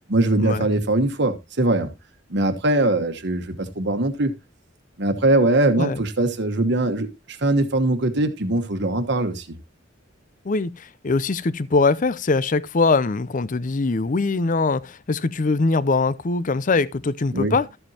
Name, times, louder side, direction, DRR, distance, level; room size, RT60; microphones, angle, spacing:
voice 1, 0.1-1.9 2.3-4.3 5.0-9.5 17.3-17.6, right 2 dB, 60° right, 1.3 m, -21 dB
voice 2, 10.4-17.7, left 3 dB, 40° left, 0.6 m, -22 dB
13.0 x 7.9 x 2.9 m
head